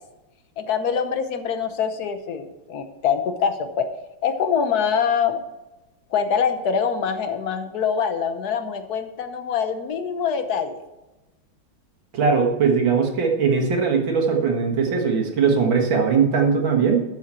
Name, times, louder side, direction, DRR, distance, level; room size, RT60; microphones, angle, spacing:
voice 1, 0.6-3.9 4.2-5.4 6.1-10.8, left 7 dB, 55° left, 8 dB, 1.2 m, -24 dB
voice 2, 12.1-17.0, right 5 dB, 65° right, 2 dB, 2.3 m, -20 dB
12.5 x 7.1 x 4.4 m, 1.0 s
omnidirectional pair, 2.3 m